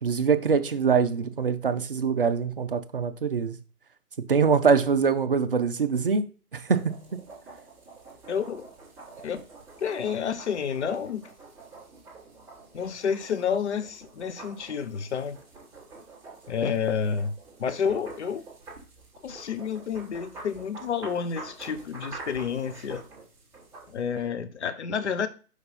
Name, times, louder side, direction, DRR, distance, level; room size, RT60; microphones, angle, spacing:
voice 1, 0.0-3.5 4.3-6.3 6.5-6.9, right 5 dB, 40° right, 0.5 m, -23 dB
sound 1, 6.7-24.3, right 3 dB, 5° right, 1.1 m, -47 dB
voice 2, 8.3-8.7 9.2-9.4 9.8-11.3 12.7-15.4 16.5-17.3 17.6-18.5 19.2-23.0 23.9-25.3, left 7 dB, 45° left, 0.7 m, -29 dB
5.3 x 4.9 x 4.1 m
figure-of-eight pair, 140°, 46 cm